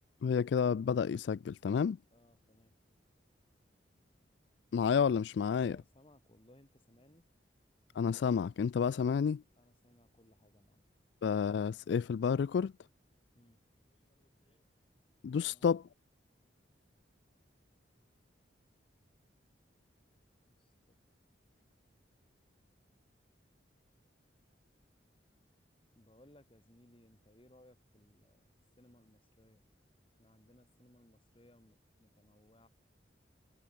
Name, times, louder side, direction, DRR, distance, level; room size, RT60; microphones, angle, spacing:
voice 1, 0.2-2.0 4.7-5.8 7.9-9.4 11.2-12.7 15.2-15.9, left 6 dB, 70° left, 0.3 m, -30 dB
voice 2, 2.1-2.7 5.6-7.2 9.6-10.9 13.3-13.6 13.9-14.6 15.4-15.7 20.4-21.0 26.0-28.5 28.8-29.6 30.2-32.7, left 1 dB, 30° left, 2.2 m, -64 dB
head